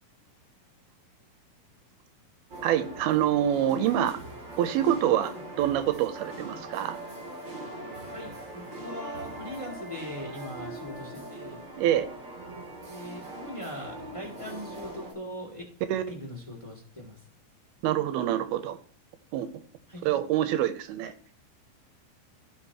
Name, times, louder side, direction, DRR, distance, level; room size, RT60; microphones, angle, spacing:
sound 1, 2.5-15.1, right 1 dB, 35° right, 2.6 m, -41 dB
voice 1, 2.6-4.2 4.5-7.0 11.8-12.1 15.9-16.0 17.8-18.8 19.3-19.6 20.0-21.1, right 11 dB, 90° right, 11 dB, 2.7 m, -26 dB
voice 2, 8.1-11.6 12.9-15.6 16.1-17.2 19.9-20.1, equal, 10° left, -1 dB, 1.9 m, -41 dB
16.5 x 5.8 x 3.0 m, 0.42 s
omnidirectional pair, 4.4 m